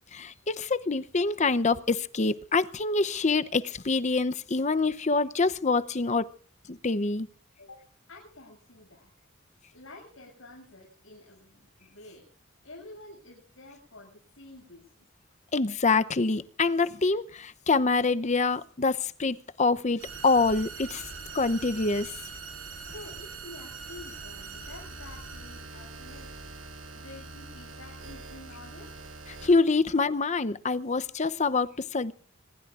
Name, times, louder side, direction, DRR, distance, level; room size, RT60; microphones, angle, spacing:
voice 1, 0.1-6.3 6.7-7.3 15.5-21.0 21.3-22.1 29.4-32.1, left 3 dB, 35° left, 0.7 m, -26 dB
voice 2, 7.6-9.1 9.7-12.3 12.6-15.1 22.6-26.3 26.9-29.0, left 2 dB, 85° left, 7.2 m, -49 dB
sound 1, 20.0-29.5, right 3 dB, 85° right, 6.8 m, -42 dB
25.5 x 21.0 x 2.5 m
head